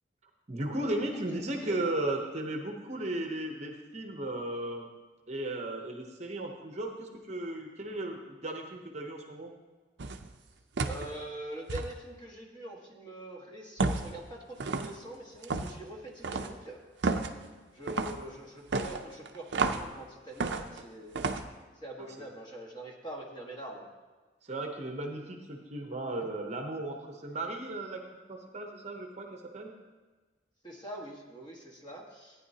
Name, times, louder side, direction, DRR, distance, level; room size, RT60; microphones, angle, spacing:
voice 1, 0.5-4.9 5.3-9.5 22.0-22.3 24.4-28.0 28.3-29.7, right 1 dB, 35° right, 3 dB, 0.8 m, -36 dB
voice 2, 1.1-1.8 10.8-16.8 17.7-21.3 21.7-23.9 30.6-32.5, right 1 dB, 25° left, -1 dB, 1.5 m, -44 dB
sound 1, 10.0-10.3 10.8-11.1 11.7-11.9 13.8-14.1 14.6-14.9 15.4-15.8 16.2-16.5 17.0-17.3 17.9-18.2 18.7-19.9 20.4-20.8 21.2-21.5, right 3 dB, 65° right, 0.5 m, -31 dB
14.5 x 9.5 x 2.8 m, 1.3 s
head